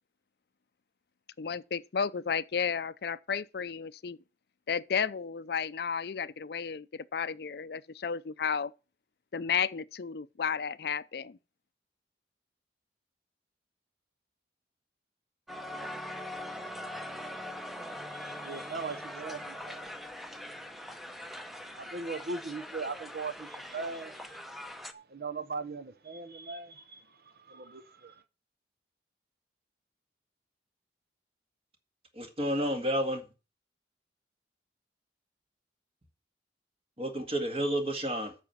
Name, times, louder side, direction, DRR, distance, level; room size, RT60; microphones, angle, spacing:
voice 1, 1.4-4.2 4.7-8.7 9.3-11.4, left 6 dB, 60° left, 0.5 m, -33 dB
Crowd, 15.5-24.9, equal, ahead, 0.7 m, -42 dB
voice 2, 18.1-19.9 20.3-20.4 20.7-21.0 21.7-24.3 24.9-28.2, right 4 dB, 55° right, 0.7 m, -40 dB
voice 3, 32.1-33.2 37.0-38.3, equal, 35° right, 1.9 m, -30 dB
8.8 x 6.1 x 7.1 m
head